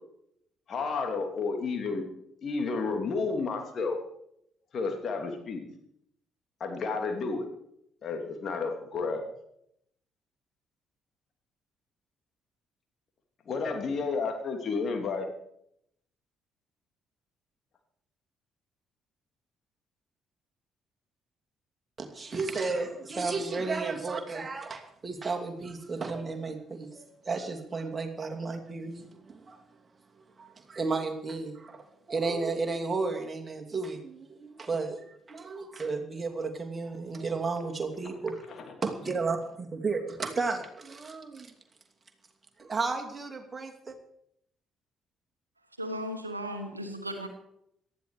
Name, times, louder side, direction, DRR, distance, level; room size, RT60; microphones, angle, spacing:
voice 1, 0.7-2.1 2.4-4.0 4.7-5.7 6.6-7.5 8.0-9.2 13.5-15.3 38.5-38.6, left 4 dB, 45° left, 4 dB, 2.9 m, -31 dB
voice 2, 22.0-29.6 30.4-38.5 38.8-41.5 42.6-44.0, right 4 dB, 30° right, 3 dB, 2.7 m, -33 dB
voice 3, 45.8-47.3, equal, 90° right, 7 dB, 1.3 m, -36 dB
18.0 x 13.0 x 5.0 m, 0.75 s
figure-of-eight pair, 45°, 0 cm